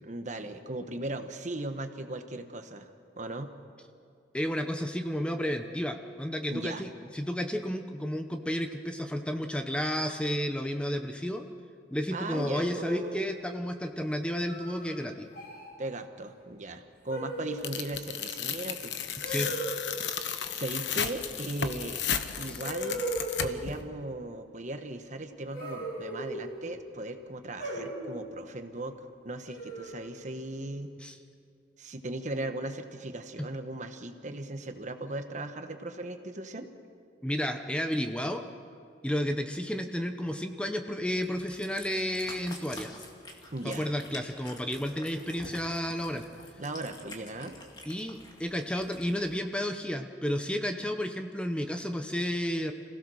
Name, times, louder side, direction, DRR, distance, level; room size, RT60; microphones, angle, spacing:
voice 1, 0.0-2.9 3.2-3.5 6.5-6.8 12.1-13.2 15.8-18.9 20.1-22.0 22.4-23.1 23.4-30.9 31.8-36.7 43.5-43.9 46.6-47.6, right 2 dB, 45° right, 7 dB, 1.2 m, -38 dB
voice 2, 4.3-11.5 11.9-15.3 19.2-19.5 22.5-22.6 31.0-31.2 33.4-33.5 37.2-38.4 39.0-42.9 43.6-46.2 47.9-52.7, equal, 5° left, 6 dB, 0.8 m, -32 dB
sound 1, 12.3-13.2 14.5-14.9 15.3-15.7 17.1-17.7 19.2-19.8 21.7-21.8 22.6-23.6 25.5-26.6 27.6-28.2 29.5-30.0, right 1 dB, 55° left, 6.9 m, -37 dB
Tearing, 17.6-23.8, left 8 dB, 90° left, 1.0 m, -34 dB
Cat, 41.2-49.3, left 2 dB, 25° left, 2.1 m, -48 dB
26.5 x 16.5 x 6.4 m, 2.3 s
head